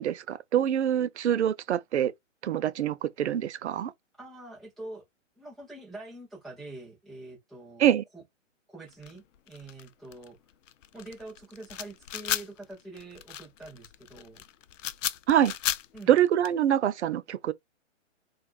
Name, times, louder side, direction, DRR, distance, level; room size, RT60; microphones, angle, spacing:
voice 1, 0.0-2.1 2.4-3.9 7.8-8.0 15.3-15.5 16.1-17.5, right 10 dB, 60° right, 0.5 m, -25 dB
voice 2, 4.2-5.0 5.4-8.2 8.7-10.4 10.9-14.4 15.9-16.1, right 2 dB, ahead, 0.5 m, -45 dB
sound 1, 8.9-16.5, left 11 dB, 70° left, 0.5 m, -35 dB
4.3 x 2.4 x 2.4 m
hypercardioid pair, 145°, 39 cm